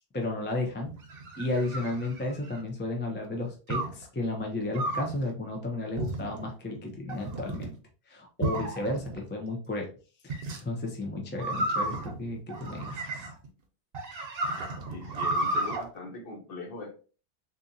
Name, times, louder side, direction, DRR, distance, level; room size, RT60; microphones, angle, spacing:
voice 1, 0.1-0.9 1.4-7.7 8.1-9.9 10.2-13.2, left 2 dB, 15° left, 1 dB, 0.5 m, -33 dB
sound 1, 0.9-2.7 3.7-4.0 4.7-5.2 6.0-6.5 7.1-7.7 8.4-9.2 10.3-10.6 11.4-13.5 13.9-15.8, right 2 dB, 60° right, 0.9 m, -32 dB
voice 2, 14.9-16.9, left 2 dB, 55° left, 1 dB, 1.0 m, -40 dB
3.7 x 2.7 x 2.6 m, 0.37 s
omnidirectional pair, 1.2 m